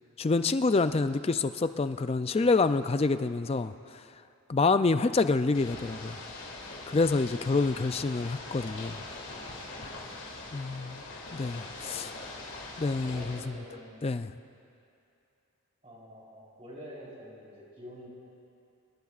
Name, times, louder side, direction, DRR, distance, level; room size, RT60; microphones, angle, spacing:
voice 1, 0.2-4.0 4.5-6.2 6.9-9.0 10.5-11.0 11.3-12.1 12.8-13.5 14.0-14.3, left 3 dB, 25° left, 11 dB, 0.3 m, -27 dB
Ocean / Boat Water vehicle, 5.5-13.4, left 2 dB, 65° left, 2.7 m, -42 dB
voice 2, 11.8-12.3 13.0-14.0 15.8-18.1, equal, 25° right, -5 dB, 4.3 m, -47 dB
26.0 x 20.5 x 2.5 m, 2.7 s
head